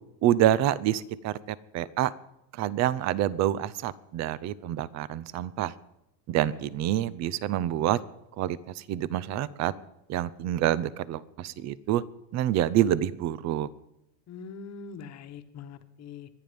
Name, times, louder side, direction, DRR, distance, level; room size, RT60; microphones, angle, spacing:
voice 1, 0.2-2.1 2.6-5.7 6.3-8.0 8.4-9.7 10.1-12.0 12.3-13.7, right 12 dB, 35° right, 20 dB, 0.7 m, -27 dB
voice 2, 14.3-16.3, left 5 dB, 35° left, 8 dB, 1.4 m, -43 dB
23.5 x 9.5 x 5.2 m, 0.87 s
supercardioid pair, 135°, 49 cm